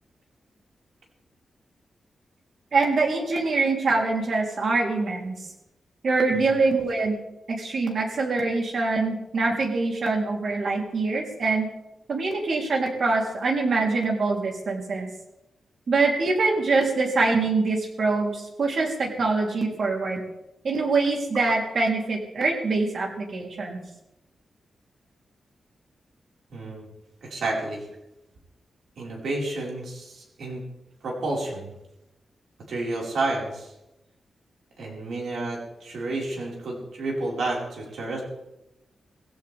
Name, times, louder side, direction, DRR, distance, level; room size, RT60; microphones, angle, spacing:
voice 1, 2.7-5.4 6.0-7.2 7.5-11.7 12.1-15.1 15.9-20.2 20.6-23.8, right 3 dB, 60° right, 0 dB, 3.6 m, -24 dB
voice 2, 26.5-26.9 27.2-27.9 29.0-30.6 31.0-31.7 32.7-33.7 34.8-38.2, right 2 dB, 80° right, -2 dB, 5.2 m, -30 dB
19.5 x 16.5 x 3.6 m, 0.90 s
wide cardioid pair, 115°, 0 cm